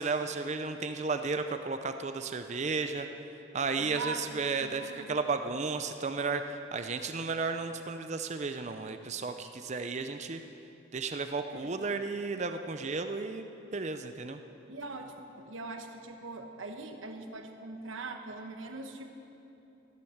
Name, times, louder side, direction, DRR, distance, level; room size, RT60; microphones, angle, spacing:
voice 1, 0.0-3.1 3.5-6.4 6.7-10.4 10.9-14.4, right 4 dB, 35° right, 8 dB, 0.5 m, -33 dB
voice 2, 3.8-5.1 11.5-11.7 14.7-19.1, right 3 dB, 85° right, 5 dB, 1.3 m, -42 dB
15.0 x 11.5 x 7.2 m, 2.9 s
head